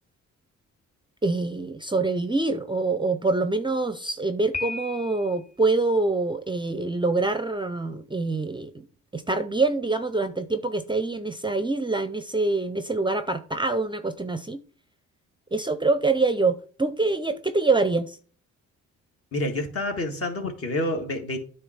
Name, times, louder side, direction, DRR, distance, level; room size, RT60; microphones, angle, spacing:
voice 1, 1.2-8.9 9.1-14.6 15.5-18.2, right 3 dB, 15° right, 0.5 m, -25 dB
Piano, 4.5-5.5, left 4 dB, 25° left, 1.3 m, -34 dB
voice 2, 19.3-21.4, left 1 dB, 50° left, 1.7 m, -28 dB
9.2 x 3.3 x 5.6 m
cardioid pair, 90°, 30 cm